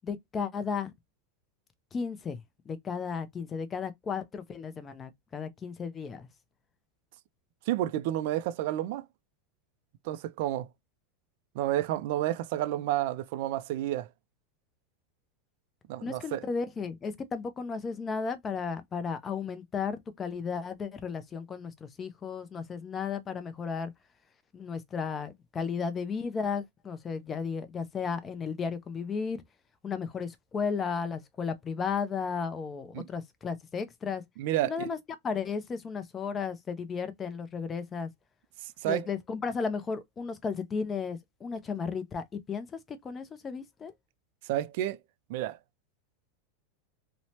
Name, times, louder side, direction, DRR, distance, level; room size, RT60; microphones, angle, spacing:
voice 1, 0.0-0.9 1.9-6.3 16.0-23.9 24.5-29.4 29.8-34.2 34.6-35.0 35.2-38.1 38.8-43.9, left 5 dB, 20° left, 0.4 m, -34 dB
voice 2, 7.7-9.1 10.0-10.7 11.5-14.1 15.9-16.4 32.9-33.0 34.4-34.9 38.6-39.1 44.5-45.0 45.3-45.6, right 13 dB, 60° right, 0.3 m, -30 dB
3.0 x 2.0 x 2.7 m
supercardioid pair, 150°, 0 cm